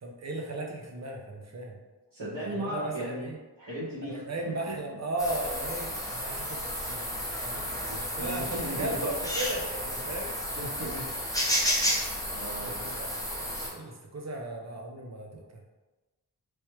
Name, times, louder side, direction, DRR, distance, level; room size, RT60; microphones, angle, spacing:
voice 1, 0.0-1.8 2.4-3.4 4.1-7.0 7.4-10.3 12.6-15.6, right 1 dB, 40° right, 1 dB, 0.7 m, -36 dB
voice 2, 2.1-3.3 3.6-4.4 7.6-9.1 10.5-11.1 12.3-12.8, right 1 dB, 70° right, -12 dB, 1.3 m, -37 dB
sound 1, 5.2-13.7, equal, 10° left, 0.9 m, -32 dB
3.3 x 3.1 x 3.0 m, 1.1 s
wide cardioid pair, 70°, 42 cm